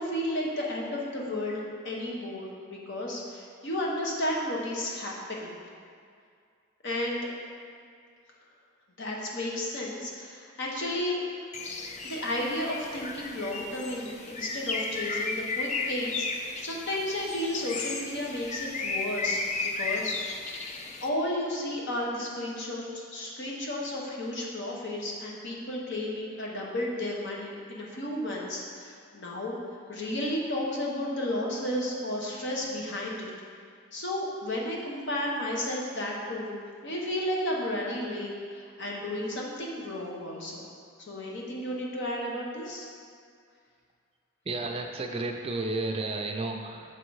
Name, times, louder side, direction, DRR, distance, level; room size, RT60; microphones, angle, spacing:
voice 1, 0.0-5.5 6.8-7.3 9.0-11.2 12.0-20.1 21.0-29.6 29.9-33.3 33.9-40.6 41.1-42.9, left 1 dB, 55° left, -2 dB, 1.0 m, -33 dB
Bird, 11.5-21.1, left 3 dB, 35° left, 0.4 m, -34 dB
voice 2, 44.4-46.9, right 2 dB, 25° right, 3 dB, 0.4 m, -32 dB
7.0 x 3.8 x 4.7 m, 2.2 s
head